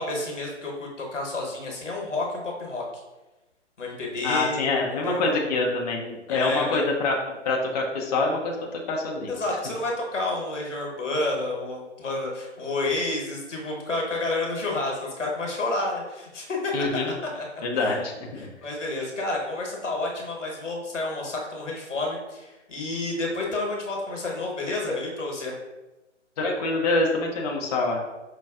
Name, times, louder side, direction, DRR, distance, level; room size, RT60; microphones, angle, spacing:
voice 1, 0.0-2.8 3.8-5.4 6.3-6.8 9.3-16.7 17.3-17.4 17.7-18.0 18.3-25.5, left 2 dB, 90° left, -1 dB, 1.2 m, -30 dB
voice 2, 4.2-7.1 7.4-9.3 16.7-17.1 17.6-18.3 26.4-28.0, left 3 dB, 35° left, -1 dB, 0.5 m, -25 dB
5.3 x 2.3 x 2.3 m, 1.1 s
figure-of-eight pair, 130°, 36 cm